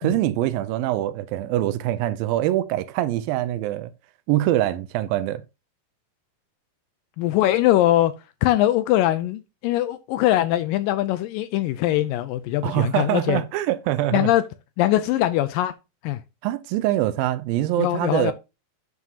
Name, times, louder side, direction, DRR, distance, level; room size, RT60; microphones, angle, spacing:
voice 1, 0.0-3.9 4.3-5.4 12.6-14.3 16.4-18.3, right 14 dB, 80° right, 2.2 m, -24 dB
voice 2, 7.2-8.1 8.4-13.4 14.1-14.4 14.8-15.7 16.0-16.2 17.8-18.3, left 14 dB, 80° left, 2.0 m, -21 dB
9.5 x 7.1 x 2.8 m
omnidirectional pair, 4.3 m